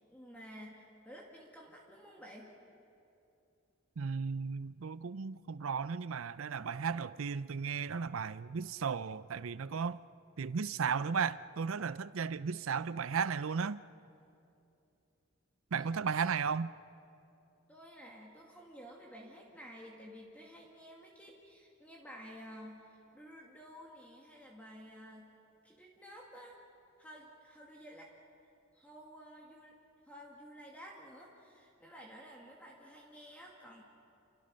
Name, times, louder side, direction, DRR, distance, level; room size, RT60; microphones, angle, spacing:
voice 1, 0.1-2.5 15.7-15.9 17.7-25.3 25.6-26.6 27.0-28.1 28.7-29.8 30.0-33.8, equal, 5° left, -2 dB, 2.2 m, -52 dB
voice 2, 4.0-10.0 10.4-13.8 15.7-16.7, right 6 dB, 75° right, 16 dB, 0.5 m, -35 dB
29.5 x 25.0 x 6.5 m, 2.7 s
head